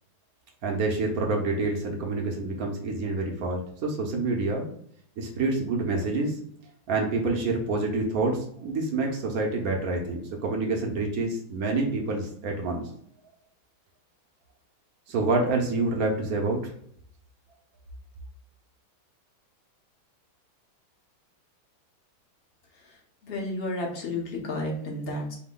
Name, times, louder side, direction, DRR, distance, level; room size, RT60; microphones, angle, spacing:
voice 1, 0.6-4.7 5.2-6.3 6.9-12.9 15.1-16.6, right 3 dB, 65° right, 1 dB, 0.9 m, -27 dB
voice 2, 22.7-25.4, left 2 dB, 45° left, -1 dB, 0.8 m, -32 dB
4.9 x 2.2 x 3.7 m, 0.64 s
omnidirectional pair, 2.2 m